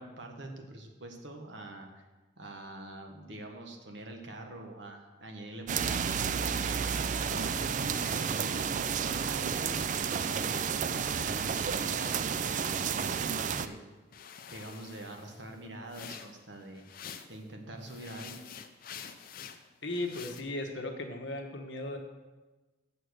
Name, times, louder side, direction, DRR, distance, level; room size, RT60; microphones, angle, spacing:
voice 1, 0.0-2.0 2.4-13.8 14.5-16.9 17.3-18.4, right 1 dB, 65° right, 3 dB, 1.4 m, -45 dB
sound 1, 5.7-13.7, right 7 dB, 40° right, 0.3 m, -31 dB
sound 2, 7.3-10.9 11.2-13.8 14.1-17.4 17.8-20.4, left 7 dB, 45° left, 0.5 m, -50 dB
voice 2, 19.8-22.0, left 2 dB, 65° left, 4 dB, 1.2 m, -36 dB
7.6 x 6.9 x 6.4 m, 1.2 s
head